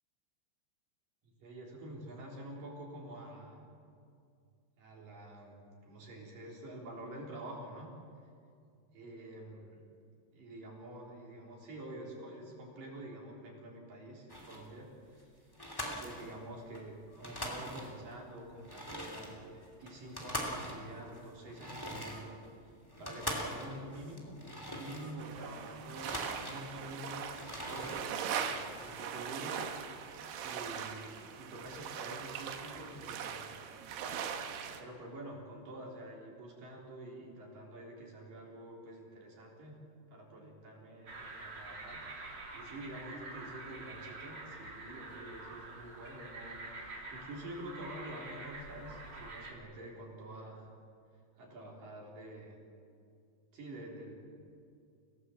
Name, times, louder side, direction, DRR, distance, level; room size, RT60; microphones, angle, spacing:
voice 1, 1.3-3.6 4.8-7.9 8.9-9.8 10.3-15.5 16.0-19.5 19.8-22.4 22.6-22.7 23.0-24.4 24.7-29.6 30.4-33.5 34.8-39.8 40.1-50.7 51.4-52.6 53.5-54.1, right 1 dB, 45° right, -2 dB, 5.1 m, -47 dB
sound 1, 14.3-14.7 15.1-15.2 15.5-16.8 17.1-18.1 18.6-25.4 25.7-26.9 27.2-28.0, equal, 10° left, 1.4 m, -42 dB
sound 2, 25.2-34.8, right 7 dB, 65° right, 3.1 m, -41 dB
sound 3, 41.1-49.5, right 2 dB, 30° right, 2.6 m, -47 dB
28.0 x 17.5 x 7.9 m, 2.4 s
omnidirectional pair, 5.5 m